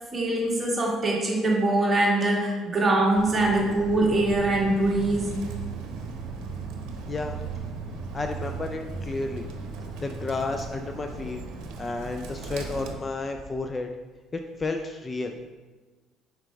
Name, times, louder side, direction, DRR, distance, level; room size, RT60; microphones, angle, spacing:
voice 1, 0.1-5.3, right 2 dB, 25° right, -3 dB, 1.6 m, -23 dB
Bird, 3.1-12.9, right 4 dB, 75° right, 0.8 m, -37 dB
voice 2, 8.1-9.4 10.0-11.4 11.8-13.9 14.3-15.3, left 3 dB, 25° left, 5 dB, 0.4 m, -31 dB
5.9 x 4.7 x 3.4 m, 1.3 s
cardioid pair, 95°, 0 cm